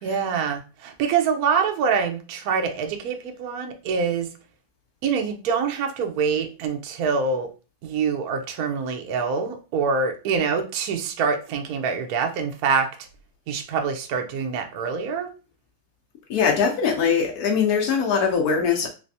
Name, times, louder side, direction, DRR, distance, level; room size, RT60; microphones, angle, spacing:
voice 1, 0.0-4.3 5.0-7.5 7.8-12.9 13.5-15.3, right 5 dB, 75° right, 0.8 m, -25 dB
voice 2, 16.3-18.9, left 6 dB, 80° left, 0.8 m, -21 dB
3.3 x 3.2 x 2.6 m
omnidirectional pair, 2.3 m